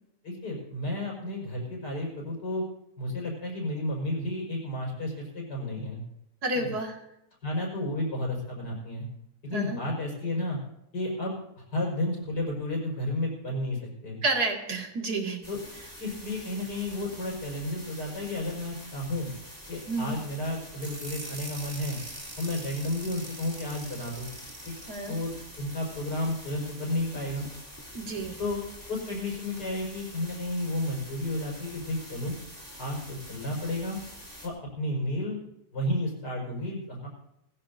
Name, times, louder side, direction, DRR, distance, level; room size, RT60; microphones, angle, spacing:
voice 1, 0.2-2.7 3.0-6.0 6.5-6.7 7.4-9.1 9.4-10.6 10.9-11.3 11.7-14.2 15.5-15.6 16.0-19.3 19.7-22.0 22.4-24.3 24.7-24.8 25.1-25.3 25.6-27.5 28.4-28.6 28.9-32.4 32.8-34.0 34.4-35.4 35.7-37.1, left 1 dB, 70° left, -2 dB, 5.7 m, -32 dB
voice 2, 6.4-7.0 9.5-9.8 14.2-15.4 19.9-20.2 24.9-25.1 27.9-28.4, right 2 dB, 60° right, 2 dB, 2.5 m, -30 dB
sound 1, 15.4-34.5, equal, 10° left, 2.7 m, -46 dB
sound 2, 20.8-26.6, right 1 dB, 15° right, 1.9 m, -44 dB
21.0 x 15.0 x 2.7 m, 0.81 s
omnidirectional pair, 1.9 m